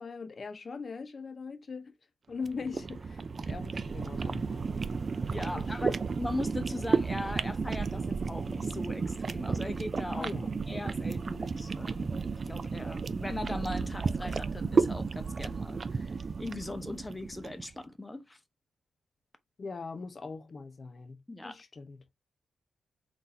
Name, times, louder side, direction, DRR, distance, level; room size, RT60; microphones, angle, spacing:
voice 1, 0.0-1.9 2.3-4.9 5.5-6.0 10.2-10.5 19.6-21.2 21.4-22.0, left 4 dB, 40° left, 0.8 m, -41 dB
sound 1, 2.4-17.6, right 4 dB, 45° right, 0.4 m, -33 dB
voice 2, 5.3-10.3 10.7-18.4 21.3-21.6, left 1 dB, 15° left, 0.8 m, -39 dB
4.0 x 2.6 x 4.1 m
cardioid pair, 95°, 0 cm